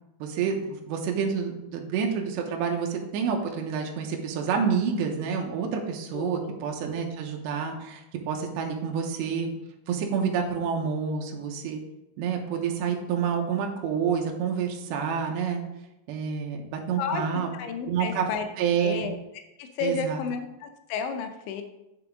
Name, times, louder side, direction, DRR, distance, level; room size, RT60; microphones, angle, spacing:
voice 1, 0.2-9.5 9.9-11.8 12.2-15.6 16.1-17.5 17.9-18.3 18.6-19.1 19.8-20.2, right 6 dB, 80° right, 1 dB, 2.7 m, -28 dB
voice 2, 6.1-6.6 17.0-17.3 17.6-18.5 18.8-19.2 19.6-21.6, left 5 dB, 80° left, 7 dB, 2.8 m, -32 dB
9.0 x 6.8 x 3.6 m, 0.92 s
omnidirectional pair, 5.7 m